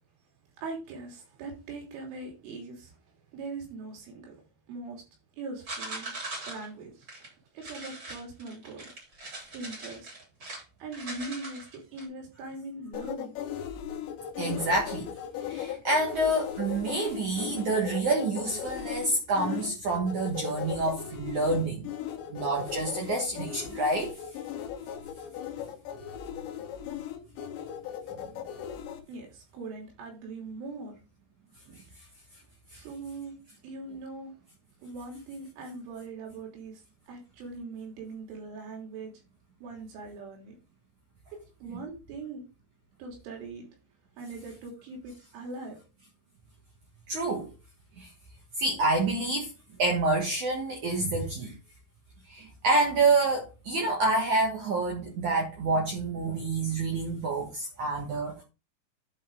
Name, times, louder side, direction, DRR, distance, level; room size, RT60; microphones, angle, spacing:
voice 1, 0.6-2.9 3.3-4.3 4.7-5.0 5.4-6.1 6.5-6.9 7.6-8.8 9.5-10.1 10.8-13.3 29.1-31.0 32.7-33.3 33.6-34.3 34.8-36.8 37.1-39.1 39.6-40.6 41.6-42.4 43.0-43.7 44.2-45.8, right 3 dB, 80° right, 5.6 m, -41 dB
sound 1, 5.7-6.7 7.0-7.3 7.6-10.6 10.9-12.1, right 2 dB, 25° right, 3.8 m, -40 dB
sound 2, 12.9-29.0, left 9 dB, 75° left, 3.4 m, -37 dB
voice 2, 14.4-15.1 15.5-21.8 22.3-24.1 41.7-41.8 47.1-47.5 48.0-48.1 48.6-49.5 49.8-51.5 52.3-58.4, right 2 dB, 60° right, 2.1 m, -28 dB
11.0 x 5.2 x 3.7 m
omnidirectional pair, 5.5 m